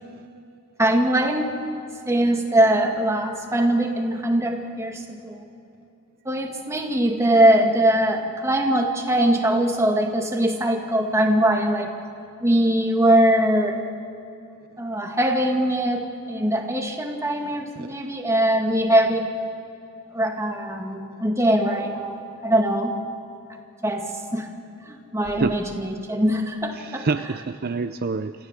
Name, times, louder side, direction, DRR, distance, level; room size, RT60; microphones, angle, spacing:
voice 1, 0.8-1.5 2.1-5.5 6.3-11.9 12.4-13.8 14.8-19.3 20.1-22.2 22.4-22.9 23.8-24.5 24.9-27.1, right 1 dB, 15° right, 2 dB, 2.1 m, -21 dB
voice 2, 17.4-17.9 25.4-25.5 26.8-28.3, right 4 dB, 50° right, 10 dB, 0.5 m, -27 dB
27.0 x 15.0 x 7.5 m, 2.8 s
head